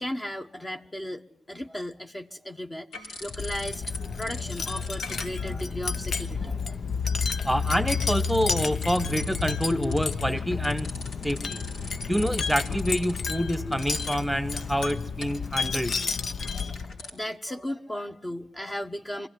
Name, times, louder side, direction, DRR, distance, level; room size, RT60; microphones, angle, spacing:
voice 1, 0.0-6.8 16.4-19.3, equal, 20° left, 4 dB, 1.5 m, -36 dB
sound 1, 2.9-4.0 4.2-17.1, left 1 dB, 80° left, 4.5 m, -43 dB
Wind chime, 3.3-17.0, left 5 dB, 60° left, 0.9 m, -31 dB
voice 2, 7.4-10.9 11.2-11.6 12.1-15.9, equal, ahead, 10 dB, 1.6 m, -27 dB
24.0 x 16.0 x 9.6 m, 0.69 s
supercardioid pair, 55°, 0 cm